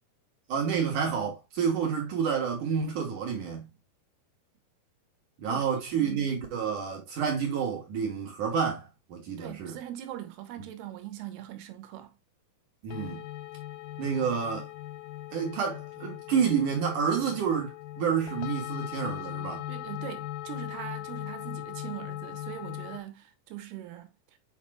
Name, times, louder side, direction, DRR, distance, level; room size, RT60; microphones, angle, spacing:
voice 1, 0.5-3.7 5.4-9.8 12.8-13.3 14.0-14.7 15.3-19.7, right 7 dB, 60° right, 2.6 m, -29 dB
voice 2, 9.4-12.1 19.7-24.1, right 12 dB, 80° right, 3.0 m, -41 dB
sound 1, 12.9-23.0, left 14 dB, 80° left, 2.2 m, -39 dB
7.4 x 5.9 x 2.4 m
omnidirectional pair, 4.7 m